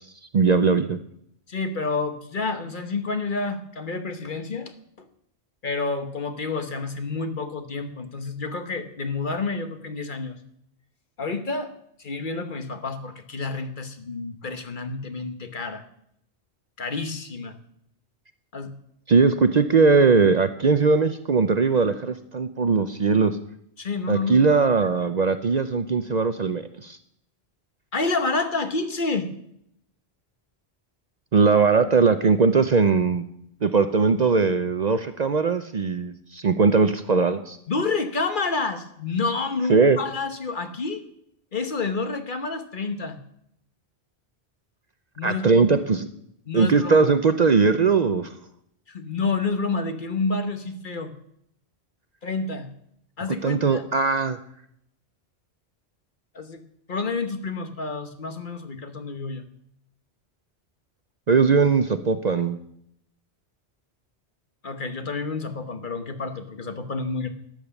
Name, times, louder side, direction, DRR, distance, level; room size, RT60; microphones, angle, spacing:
voice 1, 0.3-1.0 19.1-23.4 24.1-27.0 31.3-33.3 33.6-37.6 39.7-40.0 45.2-46.1 46.5-48.3 53.4-54.4 61.3-62.6, right 4 dB, 45° right, 10 dB, 0.6 m, -20 dB
voice 2, 1.5-4.7 5.6-10.3 11.2-11.7 12.0-15.8 16.8-17.5 18.5-18.7 23.8-24.5 27.9-29.3 37.7-41.0 41.5-43.2 45.2-45.7 46.5-47.1 48.9-51.1 52.2-52.7 53.2-53.8 56.3-56.6 56.9-59.4 64.6-67.3, left 3 dB, 50° left, 8 dB, 1.3 m, -29 dB
13.0 x 9.0 x 7.0 m, 0.73 s
omnidirectional pair, 1.1 m